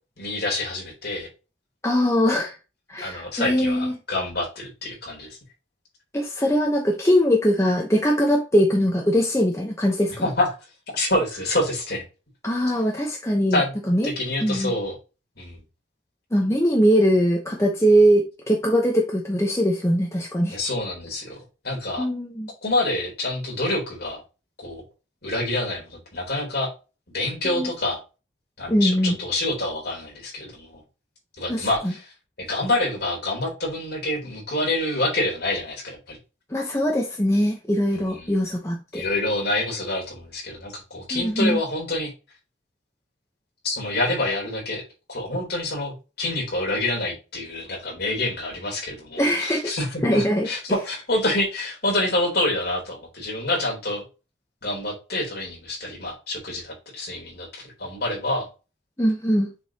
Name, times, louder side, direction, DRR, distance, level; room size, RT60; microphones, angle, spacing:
voice 1, 0.2-1.3 2.9-5.4 10.2-10.5 10.9-12.0 13.5-13.7 14.0-15.0 15.4-15.6 20.5-21.4 21.6-22.1 22.6-24.2 24.6-24.8 25.2-26.7 27.1-28.0 28.6-30.8 31.4-32.1 32.4-36.2 38.1-38.4 38.9-42.1 43.6-44.8 45.1-54.0 54.6-58.5, left 2 dB, 50° left, 3.7 m, -27 dB
voice 2, 1.8-2.6 2.9-3.9 6.1-10.3 12.4-13.6 13.9-14.1 14.4-14.7 16.3-20.6 22.0-22.5 27.4-27.7 28.7-29.2 31.5-31.9 36.5-39.0 41.1-41.6 49.2-49.7 50.0-50.5 59.0-59.5, equal, 15° left, 1.0 m, -21 dB
7.0 x 5.4 x 2.9 m
head